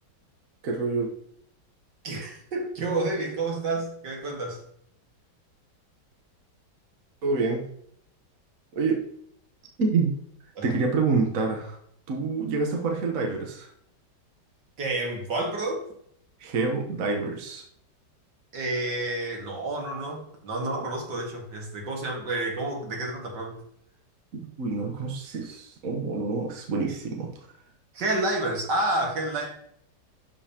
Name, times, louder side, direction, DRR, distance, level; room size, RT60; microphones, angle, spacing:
voice 1, 0.6-1.1 7.2-7.6 8.7-9.0 9.8-10.1 10.6-11.8 12.1-13.7 16.4-17.6 24.6-27.3, right 4 dB, 55° right, 1 dB, 1.4 m, -27 dB
voice 2, 2.0-4.6 10.6-10.7 14.8-15.8 18.5-23.6 27.9-29.5, right 2 dB, 75° right, 0 dB, 2.4 m, -29 dB
12.5 x 5.4 x 2.9 m, 0.69 s
omnidirectional pair, 1.9 m